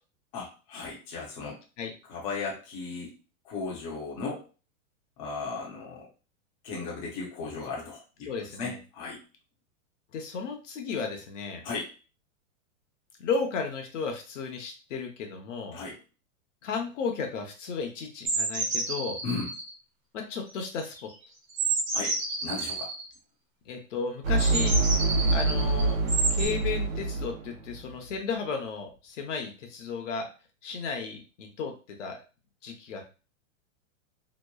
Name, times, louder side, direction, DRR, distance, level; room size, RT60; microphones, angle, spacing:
voice 1, 0.3-1.6 2.1-3.1 3.4-4.4 5.2-6.1 6.6-8.3 8.6-9.2 11.6-11.9 15.7-16.0 19.2-19.5 21.9-22.1 22.4-22.9, left 4 dB, 25° left, -3 dB, 0.5 m, -36 dB
voice 2, 8.2-8.8 10.1-11.6 13.2-15.8 16.6-19.2 20.1-20.9 23.7-24.7 25.3-26.0 26.3-30.3 30.6-32.2 32.6-33.2, left 5 dB, 60° left, 4 dB, 0.8 m, -34 dB
sound 1, 18.3-19.7 20.5-21.1 21.5-23.0 24.4-26.5, right 3 dB, 20° right, 0.7 m, -30 dB
sound 2, 24.2-27.8, right 3 dB, 70° right, 0.9 m, -26 dB
2.9 x 2.0 x 2.2 m, 0.33 s
supercardioid pair, 165°, 41 cm